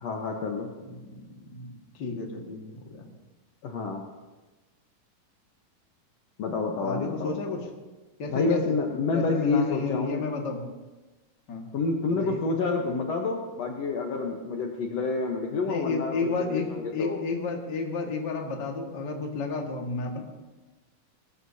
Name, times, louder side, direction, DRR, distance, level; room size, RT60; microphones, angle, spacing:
voice 1, 0.0-0.7 3.6-4.1 6.4-7.4 8.3-10.2 11.7-17.2, left 3 dB, 60° left, 0 dB, 2.1 m, -28 dB
voice 2, 0.8-1.7 2.0-2.6 2.9-3.1 6.8-7.6 8.2-8.8 9.1-10.7 11.5-11.7 12.1-12.4 15.7-20.2, left 4 dB, 40° left, 0 dB, 2.1 m, -32 dB
20.5 x 20.0 x 2.8 m, 1.2 s
omnidirectional pair, 3.7 m